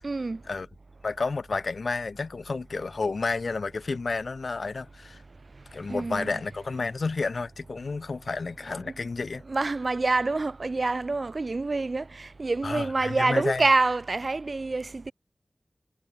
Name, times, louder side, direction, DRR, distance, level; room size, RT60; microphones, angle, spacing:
voice 1, 0.0-0.4 5.9-6.4 9.5-15.1, right 3 dB, 60° right, 0.6 m, -26 dB
voice 2, 1.0-5.2 5.7-9.4 12.6-13.7, left 4 dB, 80° left, 2.2 m, -31 dB
wide cardioid pair, 65°, 0 cm